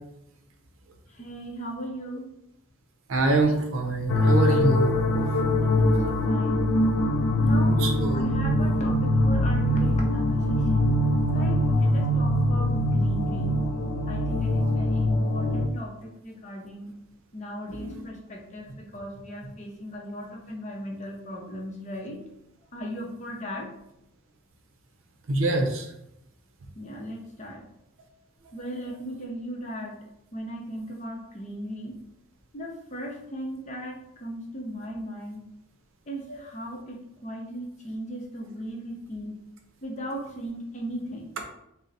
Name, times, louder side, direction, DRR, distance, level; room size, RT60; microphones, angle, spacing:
voice 1, 1.1-2.3 5.6-6.7 7.4-11.0 11.3-13.6 14.1-16.9 17.3-22.2 22.7-23.7 26.8-27.6 28.5-30.0 30.3-32.0 32.5-35.5 36.1-39.4 39.8-41.3, equal, 35° left, 0 dB, 0.6 m, -37 dB
voice 2, 3.1-4.9 5.2-5.3 7.8-8.2 17.7-18.0 25.3-25.9, right 2 dB, 75° right, 4 dB, 0.6 m, -25 dB
sound 1, 4.1-15.7, left 1 dB, 85° left, 0.4 m, -23 dB
3.8 x 2.0 x 4.0 m, 0.81 s
head